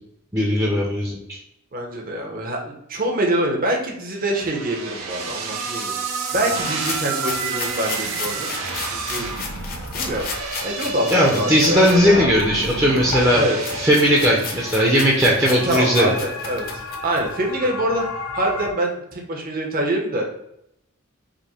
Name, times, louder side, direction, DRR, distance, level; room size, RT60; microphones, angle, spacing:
voice 1, 0.3-1.4 11.1-13.4 13.8-16.1, equal, 15° right, -3 dB, 0.6 m, -18 dB
voice 2, 1.7-8.6 8.9-9.3 9.9-10.3 10.6-12.3 13.3-13.6 15.5-16.7 17.0-18.0 18.3-20.4, right 1 dB, 40° right, 1 dB, 0.9 m, -25 dB
sound 1, 4.2-15.5, right 3 dB, 75° right, 0.8 m, -30 dB
sound 2, 6.5-12.0 12.4-17.3, left 4 dB, 45° left, 0.8 m, -34 dB
sound 3, 11.7-18.7, left 3 dB, 85° left, 1.6 m, -34 dB
5.1 x 2.2 x 4.2 m, 0.78 s
head